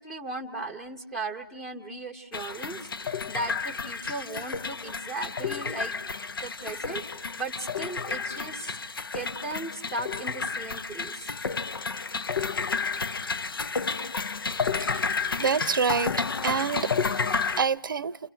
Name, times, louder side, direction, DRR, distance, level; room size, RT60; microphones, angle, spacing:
voice 1, 0.0-6.1 6.4-7.0 7.4-8.8 9.1-11.3, right 2 dB, 5° left, 1.0 m, -37 dB
sound 1, 2.3-17.6, left 5 dB, 75° left, 0.8 m, -31 dB
voice 2, 15.4-16.2 16.4-16.9 17.6-18.2, right 6 dB, 65° right, 0.7 m, -26 dB
30.0 x 29.5 x 3.5 m
hypercardioid pair, 155°, 12 cm